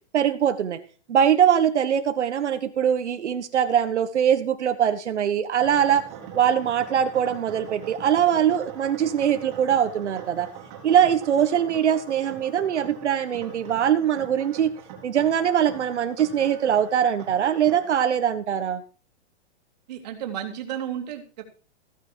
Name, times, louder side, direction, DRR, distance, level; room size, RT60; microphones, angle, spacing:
voice 1, 0.1-0.8 1.1-6.0 6.3-10.5 10.8-14.7 15.0-18.8, right 9 dB, 85° right, 8 dB, 1.5 m, -22 dB
sound 1, 5.6-18.2, right 8 dB, 20° right, 3.1 m, -42 dB
voice 2, 19.9-21.4, right 10 dB, 35° right, 4 dB, 2.7 m, -33 dB
15.5 x 9.5 x 4.6 m, 0.37 s
hypercardioid pair, 180°, 34 cm